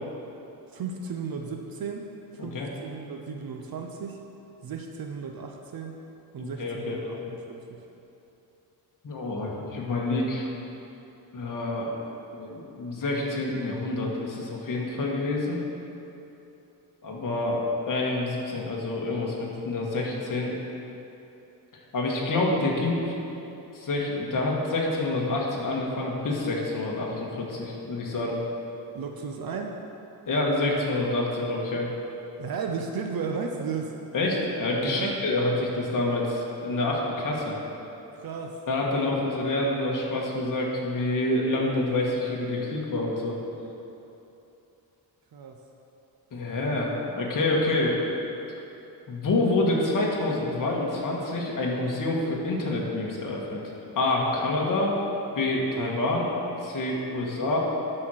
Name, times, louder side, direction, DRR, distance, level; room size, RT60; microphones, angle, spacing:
voice 1, 0.7-2.1 2.3-2.6 2.8-4.2 4.6-5.9 6.3-7.9 28.9-29.8 32.4-33.9 34.8-35.2 38.1-38.6 45.3-45.6, right 5 dB, 60° right, 2 dB, 0.7 m, -34 dB
voice 2, 6.4-7.2 9.0-10.5 11.3-11.9 12.3-15.6 17.0-20.5 21.9-23.1 23.7-28.4 30.3-31.9 34.1-37.6 38.7-43.4 46.3-48.0 49.1-53.6 53.9-54.9 55.3-56.3 56.6-57.6, left 2 dB, 50° left, -3 dB, 1.7 m, -27 dB
11.5 x 4.4 x 6.4 m, 2.9 s
wide cardioid pair, 140°, 41 cm